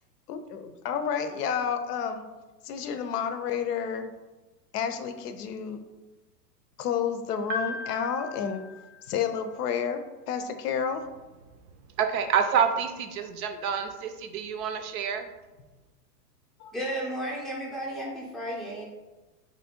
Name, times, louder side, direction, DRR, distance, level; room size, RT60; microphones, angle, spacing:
voice 1, 0.3-2.3 2.6-4.1 4.7-5.8 6.8-8.6 9.0-11.1 16.6-16.7, left 7 dB, 70° left, 8 dB, 0.6 m, -30 dB
Piano, 7.5-9.6, left 2 dB, 85° right, 0.9 m, -37 dB
voice 2, 12.0-15.3, right 7 dB, 60° right, 7 dB, 0.5 m, -27 dB
voice 3, 16.7-18.8, right 1 dB, ahead, -5 dB, 0.5 m, -33 dB
3.0 x 2.7 x 4.2 m, 1.2 s
hypercardioid pair, 125°, 50 cm